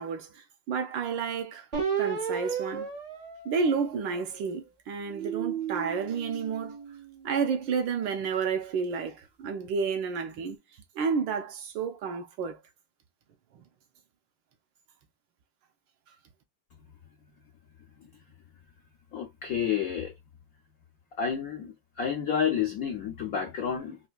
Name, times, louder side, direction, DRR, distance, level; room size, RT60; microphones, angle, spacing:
voice 1, 0.0-1.7 2.0-2.9 3.4-6.8 7.2-10.6 10.9-12.6 13.5-13.6, right 5 dB, 75° right, 1.3 m, -31 dB
sound 1, 1.7-4.4 5.0-7.5, right 7 dB, 45° right, 0.5 m, -34 dB
voice 2, 19.1-20.1 21.2-24.0, left 8 dB, 80° left, 0.7 m, -30 dB
4.2 x 2.2 x 2.4 m
omnidirectional pair, 2.2 m